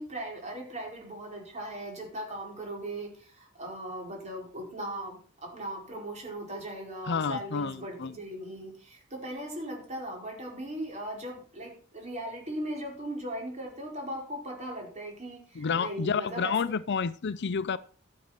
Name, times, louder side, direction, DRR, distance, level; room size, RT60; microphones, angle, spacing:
voice 1, 0.0-16.7, right 1 dB, 35° right, 5.0 m, -38 dB
voice 2, 7.1-8.2 15.6-17.8, left 5 dB, 55° left, 0.5 m, -30 dB
12.5 x 7.7 x 5.8 m
head